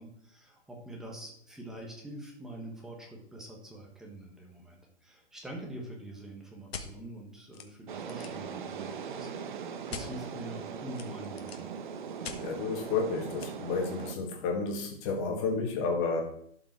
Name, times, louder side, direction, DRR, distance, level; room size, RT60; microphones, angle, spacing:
voice 1, 0.0-9.3 9.6-11.7, right 1 dB, ahead, -1 dB, 1.3 m, -45 dB
sound 1, 6.7-6.9 7.5-7.6 8.0-8.4 9.9-10.1 10.9-11.7 12.2-12.4 13.4-13.5, left 6 dB, 65° left, 1.6 m, -41 dB
sound 2, 7.9-14.2, right 6 dB, 45° right, 0.9 m, -40 dB
voice 2, 12.4-16.2, left 4 dB, 25° left, 1 dB, 2.2 m, -31 dB
12.0 x 5.4 x 4.7 m, 0.65 s
hypercardioid pair, 155°, 33 cm